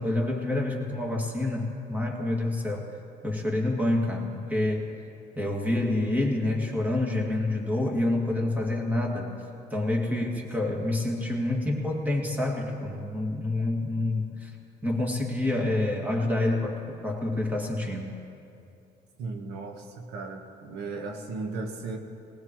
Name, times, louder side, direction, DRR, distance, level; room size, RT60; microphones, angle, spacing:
voice 1, 0.0-2.9 3.2-5.0 5.4-9.3 9.7-14.6 14.8-18.1, left 2 dB, 10° right, -1 dB, 2.2 m, -28 dB
voice 2, 19.2-22.0, right 3 dB, 80° right, 3 dB, 1.4 m, -36 dB
19.5 x 19.0 x 3.2 m, 2.6 s
cardioid pair, 110°, 17 cm